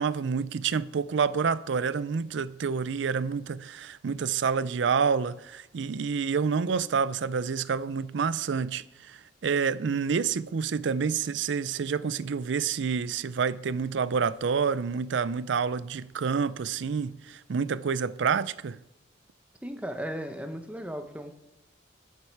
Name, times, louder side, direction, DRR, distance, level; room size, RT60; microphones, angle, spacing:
voice 1, 0.0-18.8, right 6 dB, 70° right, 0.4 m, -28 dB
voice 2, 19.6-21.3, equal, 5° right, 0.8 m, -36 dB
13.5 x 7.4 x 4.7 m
head